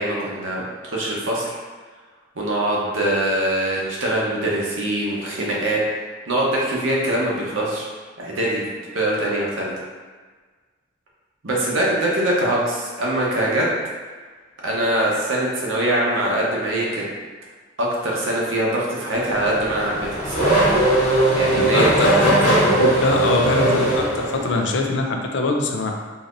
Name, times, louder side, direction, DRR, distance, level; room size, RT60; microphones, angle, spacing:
voice 1, 0.0-1.6 2.4-5.8 6.3-7.9 8.2-8.6 8.9-9.7 11.4-13.8 14.6-17.0 17.8-20.6 21.3-21.9, right 1 dB, 85° right, -4 dB, 0.9 m, -23 dB
Race car auto racing / Accelerating revving vroom, 19.2-24.7, right 1 dB, 35° left, 1.2 m, -19 dB
voice 2, 21.6-25.9, left 2 dB, 65° left, 2 dB, 0.5 m, -23 dB
3.9 x 2.9 x 2.5 m, 1.4 s
head